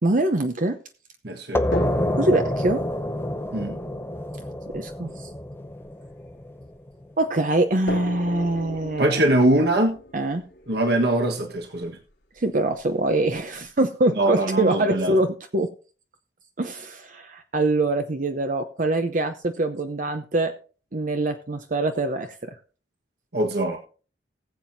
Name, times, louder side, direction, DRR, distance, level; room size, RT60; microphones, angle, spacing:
voice 1, 0.0-0.8 2.1-2.8 4.7-5.3 7.2-9.2 10.1-10.4 12.4-15.7 16.6-20.5 20.9-22.4, right 2 dB, 45° right, 7 dB, 0.8 m, -24 dB
voice 2, 1.2-1.7 3.5-3.8 9.0-10.0 10.7-12.0 14.2-15.1 23.3-23.8, right 1 dB, 65° right, 3 dB, 1.5 m, -22 dB
sound 1, 1.5-6.9, left 1 dB, 15° left, 0.6 m, -28 dB
sound 2, 1.7-6.9 7.9-11.8 12.8-12.9 13.3-13.4, left 1 dB, 85° left, 2.6 m, -37 dB
19.5 x 7.7 x 2.7 m, 0.37 s
head